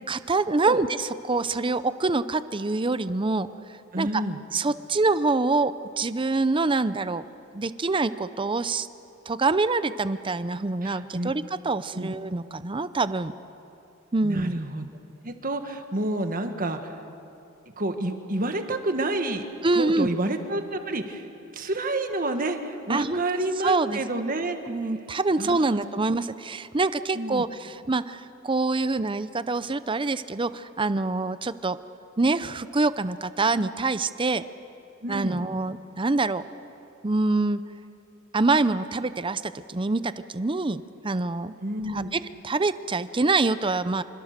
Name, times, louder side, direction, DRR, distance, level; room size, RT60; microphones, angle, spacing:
voice 1, 0.1-3.5 4.0-4.2 4.5-7.2 7.5-8.9 9.3-13.3 14.1-14.6 19.6-20.1 22.9-23.2 23.6-24.0 24.7-31.8 32.2-34.4 35.1-36.4 37.0-37.6 38.3-41.5 41.9-44.0, right 3 dB, 25° right, 14 dB, 0.6 m, -25 dB
voice 2, 3.9-4.4 10.8-11.3 11.9-12.1 14.2-14.9 15.2-16.9 17.8-19.5 19.7-21.3 21.5-24.6 25.4-25.8 27.1-27.5 35.0-35.4 41.6-42.1, right 2 dB, 45° right, 6 dB, 1.6 m, -29 dB
26.5 x 25.5 x 6.7 m, 2.7 s
head